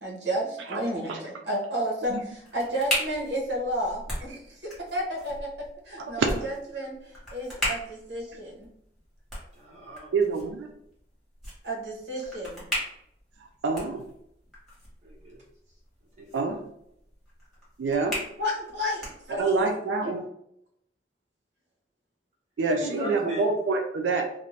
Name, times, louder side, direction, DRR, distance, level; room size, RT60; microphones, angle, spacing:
voice 1, 0.0-5.5 5.8-8.7 11.6-12.6 18.4-19.7 20.0-20.1 22.8-23.1, equal, 70° right, -1 dB, 0.8 m, -32 dB
sound 1, 2.0-19.7, left 1 dB, ahead, 1.2 m, -38 dB
voice 2, 5.9-6.3 8.3-8.4 10.1-10.7 13.6-14.0 16.3-16.6 17.8-18.2 19.3-20.2 22.6-24.3, right 4 dB, 85° right, 3 dB, 0.4 m, -26 dB
voice 3, 9.5-10.2 15.0-15.4 16.2-16.4 22.7-23.4, right 2 dB, 40° right, -6 dB, 1.0 m, -38 dB
2.5 x 2.0 x 3.2 m, 0.74 s
head